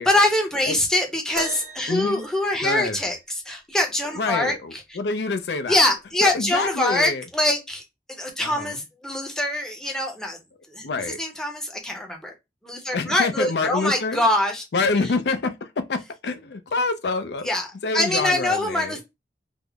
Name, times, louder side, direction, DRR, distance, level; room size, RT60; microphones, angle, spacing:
voice 1, 0.0-4.8 5.7-7.8 8.2-10.4 10.7-12.3 12.6-14.6 15.0-15.1 17.4-17.7 17.9-19.0, left 1 dB, 5° left, 0.6 m, -24 dB
sound 1, 1.3-3.2 4.9-5.0 5.8-6.0 6.9-7.0, right 2 dB, 50° right, 0.6 m, -37 dB
voice 2, 1.9-2.2 2.6-3.0 4.1-5.8 6.2-7.2 8.4-8.8 10.8-11.2 12.9-14.2 14.7-17.5 17.8-19.0, left 3 dB, 70° left, 0.5 m, -26 dB
3.5 x 2.0 x 3.4 m
head